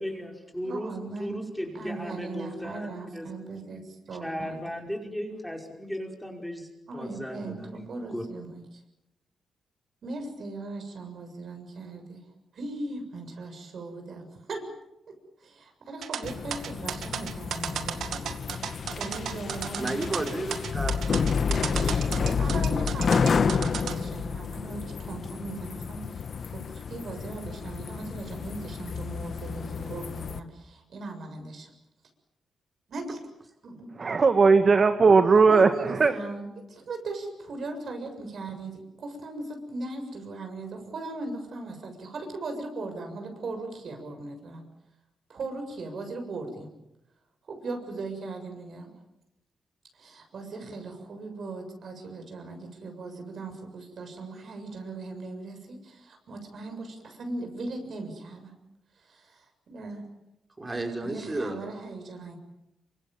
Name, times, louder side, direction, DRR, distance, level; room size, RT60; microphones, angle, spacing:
voice 1, 0.0-0.9 1.2-2.9 3.1-3.3 4.2-8.2, equal, ahead, 1 dB, 5.3 m, -36 dB
voice 2, 0.6-1.4 1.7-3.8 4.1-4.6 6.9-8.8 10.0-12.2 12.5-14.7 15.1-15.2 15.4-18.4 18.9-20.1 21.7-26.3 26.5-31.7 32.9-33.2 33.6-33.9 35.4-44.6 45.3-46.7 47.5-48.9 49.9-58.5 59.0-60.0 61.0-62.4, right 3 dB, 55° right, 5 dB, 7.1 m, -38 dB
sound 1, 16.0-24.0, right 8 dB, 80° right, 2.1 m, -34 dB
sound 2, 16.2-30.4, left 6 dB, 50° left, 1.3 m, -30 dB
voice 3, 19.8-22.4 60.6-61.7, right 2 dB, 20° right, 4 dB, 5.3 m, -34 dB
voice 4, 34.0-36.1, right 4 dB, 40° right, 8 dB, 1.7 m, -18 dB
28.0 x 25.5 x 7.5 m, 0.89 s
cardioid pair, 115°, 0 cm